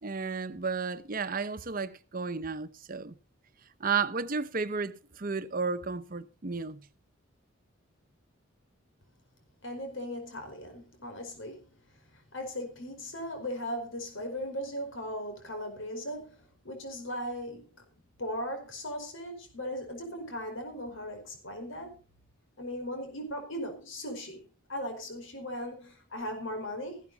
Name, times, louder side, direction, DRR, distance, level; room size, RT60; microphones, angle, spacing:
voice 1, 0.0-3.1 3.8-6.8, right 5 dB, 45° right, 0.9 m, -33 dB
voice 2, 9.6-11.7 12.3-16.4 16.6-17.6 18.2-22.0 22.6-24.4 24.7-27.0, equal, 80° left, 4.9 m, -38 dB
15.0 x 12.0 x 4.1 m
head